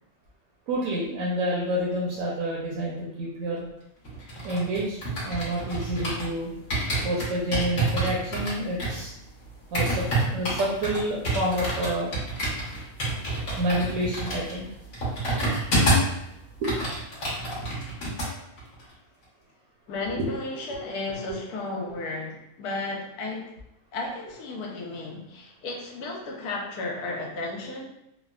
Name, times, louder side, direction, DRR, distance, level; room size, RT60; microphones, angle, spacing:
voice 1, 0.7-3.7 4.4-5.0 5.2-6.5 7.0-9.1 9.7-12.2 13.6-14.7 16.6-16.8 21.9-22.0, right 1 dB, 70° right, -4 dB, 0.9 m, -28 dB
sound 1, 4.0-6.3 6.7-16.2 16.5-18.3 18.6-18.8, right 1 dB, 60° left, 1.3 m, -28 dB
voice 2, 19.9-23.5 23.9-27.8, left 2 dB, 85° left, -1 dB, 1.1 m, -34 dB
3.2 x 2.0 x 2.2 m, 0.80 s
omnidirectional pair, 1.6 m